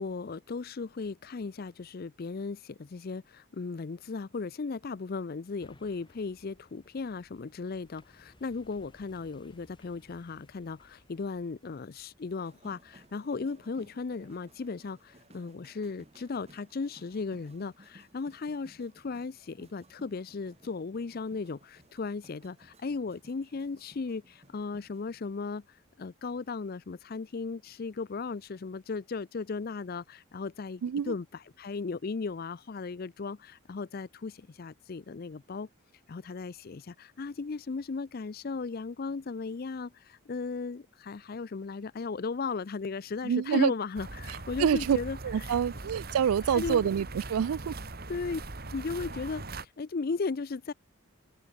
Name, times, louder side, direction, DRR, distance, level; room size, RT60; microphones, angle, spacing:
voice 1, 0.0-35.7 36.1-45.6 46.4-46.9 48.1-48.4 48.7-50.7, left 4 dB, 45° left, 0.4 m, -36 dB
sound 1, 5.6-17.0 17.5-17.6, left 1 dB, 20° left, 3.8 m, -63 dB
sound 2, 12.4-25.1, right 1 dB, 30° right, 4.7 m, -60 dB
voice 2, 30.8-31.1 43.2-43.7 44.6-45.0 45.2-47.8, right 8 dB, 85° right, 0.4 m, -27 dB
sound 3, 43.9-49.6, right 2 dB, 45° right, 1.9 m, -40 dB
open air
head